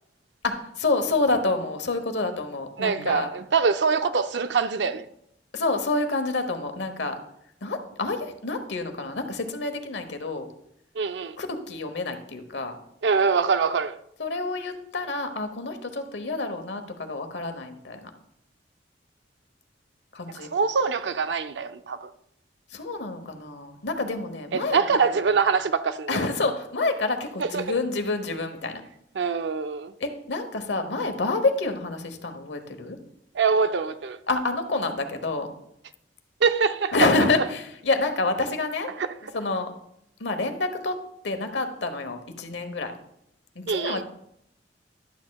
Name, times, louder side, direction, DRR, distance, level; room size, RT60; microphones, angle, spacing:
voice 1, 0.4-3.3 5.5-7.2 7.6-10.5 11.4-12.8 14.2-18.1 20.1-20.5 22.7-25.2 26.1-28.8 30.0-33.0 34.3-35.5 36.9-38.9 39.3-39.7 40.2-41.0 41.2-42.9 43.5-44.0, left 3 dB, 90° left, 1.0 m, -28 dB
voice 2, 2.8-5.1 11.0-11.4 13.0-14.0 20.3-22.1 24.5-26.2 27.4-27.7 29.2-29.9 33.3-34.2 36.4-36.9 39.0-39.1 43.7-44.0, right 5 dB, 80° right, 0.5 m, -24 dB
11.5 x 8.4 x 2.3 m
head